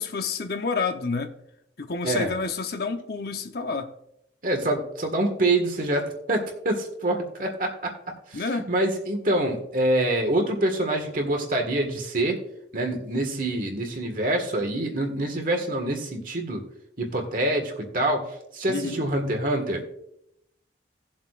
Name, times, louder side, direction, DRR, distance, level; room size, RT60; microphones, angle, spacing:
voice 1, 0.0-1.3 1.8-3.9 8.3-8.7 18.7-19.0, left 4 dB, 60° left, 6 dB, 0.9 m, -29 dB
voice 2, 4.4-7.9 8.3-12.4 12.7-16.6 17.0-18.2 18.5-19.8, right 1 dB, 50° right, 3 dB, 1.7 m, -26 dB
18.0 x 7.3 x 2.5 m, 0.76 s
head